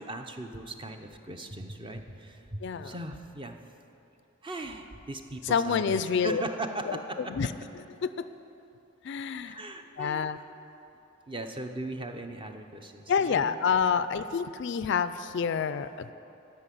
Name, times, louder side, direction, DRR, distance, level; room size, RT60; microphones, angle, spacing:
voice 1, 0.0-3.6 4.4-7.3 9.4-10.2 11.3-13.5, right 1 dB, 25° right, 5 dB, 0.6 m, -38 dB
voice 2, 2.6-2.9 5.4-6.4 6.9-7.0 7.3-7.5 8.0-8.1 9.0-9.6 10.0-10.4 13.1-16.1, left 6 dB, 55° left, 12 dB, 0.3 m, -28 dB
12.0 x 5.8 x 9.1 m, 2.9 s
head